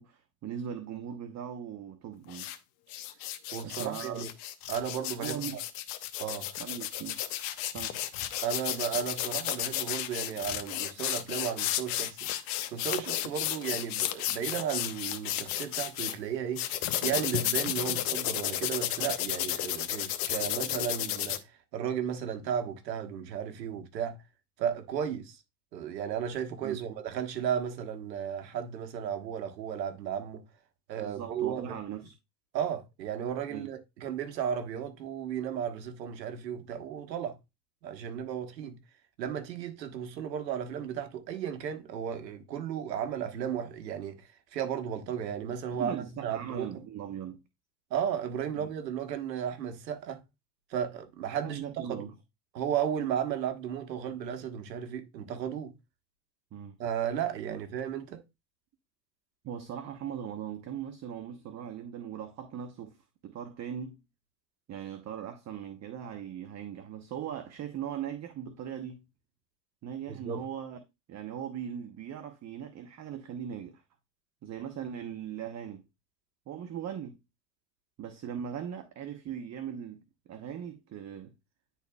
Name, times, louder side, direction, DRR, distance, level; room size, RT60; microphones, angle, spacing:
voice 1, 0.0-2.5 3.6-4.3 5.1-5.6 6.6-7.2 7.7-8.0 26.6-26.8 31.0-32.1 33.5-33.7 45.8-47.4 48.5-48.7 51.4-52.1 56.5-56.8 57.5-57.6 59.4-63.0 63.2-64.0 64.7-69.0 69.8-70.8 71.1-73.8 74.4-75.9 76.5-77.2 78.0-81.3, right 9 dB, 35° right, 1.0 m, -39 dB
sound 1, 2.3-2.6 2.9-16.1 16.6-21.4, left 13 dB, 65° left, 1.1 m, -33 dB
voice 2, 3.5-4.3 4.7-5.6 6.2-6.5 8.4-12.3 12.7-16.7 17.0-24.2 24.6-25.4 25.7-30.4 30.9-31.8 32.5-37.4 37.8-38.8 39.2-46.9 47.9-50.2 50.7-52.1 52.5-55.7 56.8-58.2 70.1-70.4, right 8 dB, 85° right, 1.4 m, -34 dB
10.5 x 4.2 x 2.3 m
hypercardioid pair, 95°, 49 cm